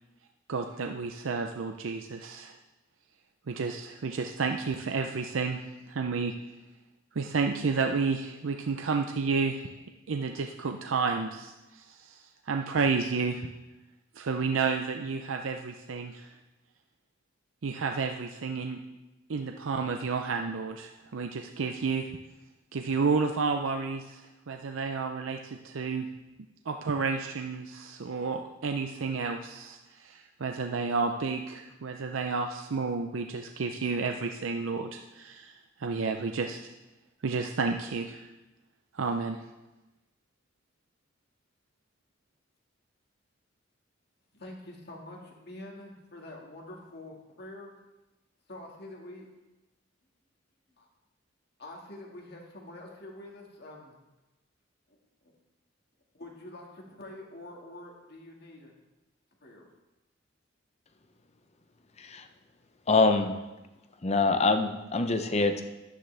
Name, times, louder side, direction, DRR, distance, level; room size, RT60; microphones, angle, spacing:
voice 1, 0.5-2.6 3.5-5.6 5.9-6.3 7.1-9.6 10.1-13.5 14.2-16.3 17.6-18.8 19.3-22.1 22.7-24.2 24.5-26.1 26.7-36.6 37.2-38.2 38.9-39.4, right 4 dB, 80° right, 5 dB, 0.6 m, -31 dB
voice 2, 44.3-47.7 48.5-49.3 50.8-50.9 51.6-54.0 54.9-55.0 55.2-55.3 56.1-58.7 59.4-59.7, left 1 dB, 55° left, 0 dB, 1.9 m, -46 dB
voice 3, 62.9-63.4 64.0-65.6, left 3 dB, 35° left, 8 dB, 0.7 m, -25 dB
11.5 x 9.8 x 3.4 m, 1.1 s
head